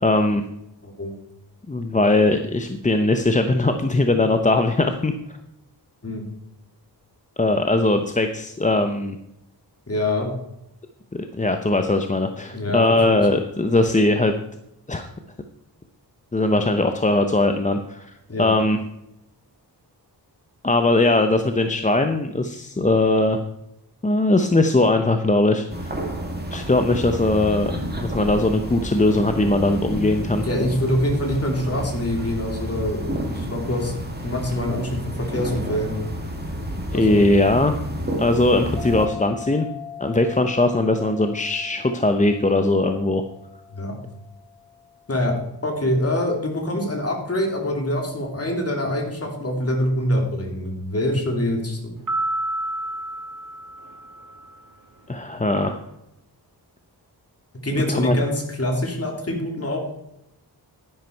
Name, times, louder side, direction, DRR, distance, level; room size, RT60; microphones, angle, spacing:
voice 1, 0.0-0.4 1.7-5.1 7.4-9.2 11.1-14.3 14.9-15.1 16.3-18.1 18.4-18.8 20.6-23.4 24.0-25.9 26.5-27.7 28.0-30.4 36.9-37.8 38.2-39.7 40.0-43.2 55.1-55.8 57.9-58.2, left 2 dB, 20° left, 6 dB, 0.7 m, -20 dB
voice 2, 0.8-1.2 6.0-6.2 9.9-10.3 12.5-13.3 18.3-18.5 30.4-33.9 34.2-34.9 35.3-35.9 36.9-37.2 43.7-43.9 45.1-45.3 45.6-51.9 57.6-59.8, left 1 dB, 35° left, 1 dB, 2.9 m, -25 dB
sound 1, 25.7-39.1, right 1 dB, 25° right, 2.0 m, -30 dB
sound 2, 38.8-45.8, left 7 dB, 85° right, 1.5 m, -41 dB
sound 3, 52.1-54.6, right 1 dB, 50° right, 1.5 m, -29 dB
11.0 x 10.5 x 4.6 m, 0.84 s
wide cardioid pair, 105°, 41 cm